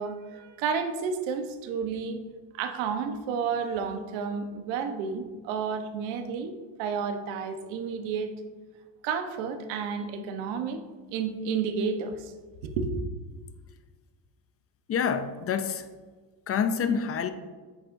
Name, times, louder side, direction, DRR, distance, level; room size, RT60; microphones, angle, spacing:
voice 1, 0.0-2.2 2.5-8.3 9.0-10.8 11.1-12.3 12.6-12.9, right 6 dB, 80° right, 7 dB, 1.1 m, -31 dB
voice 2, 14.9-15.9 16.5-17.3, left 7 dB, 30° left, 10 dB, 0.5 m, -27 dB
10.0 x 8.7 x 2.6 m, 1.4 s
cardioid pair, 130°, 46 cm